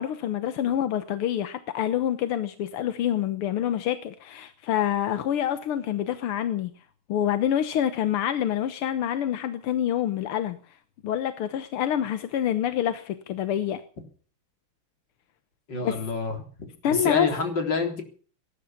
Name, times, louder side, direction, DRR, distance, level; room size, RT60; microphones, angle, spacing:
voice 1, 0.0-6.7 7.1-10.6 11.0-13.8 15.8-16.0 16.8-17.3, left 10 dB, 85° left, 11 dB, 1.9 m, -26 dB
voice 2, 15.7-16.4 16.8-18.0, left 4 dB, 55° left, 4 dB, 4.4 m, -27 dB
18.5 x 11.0 x 7.2 m, 0.42 s
omnidirectional pair, 2.4 m